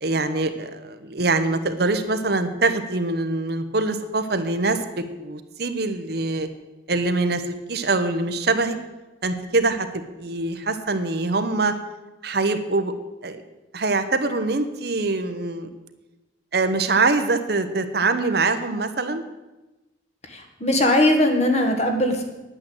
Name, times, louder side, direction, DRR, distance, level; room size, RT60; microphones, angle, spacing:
voice 1, 0.0-6.5 6.9-7.4 7.7-8.8 9.2-11.7 12.2-12.9 13.2-13.4 13.7-15.7 16.5-19.2, right 3 dB, 55° right, 8 dB, 1.0 m, -24 dB
voice 2, 20.3-22.2, left 1 dB, 35° left, 4 dB, 1.8 m, -20 dB
10.5 x 9.1 x 7.8 m, 1.1 s
head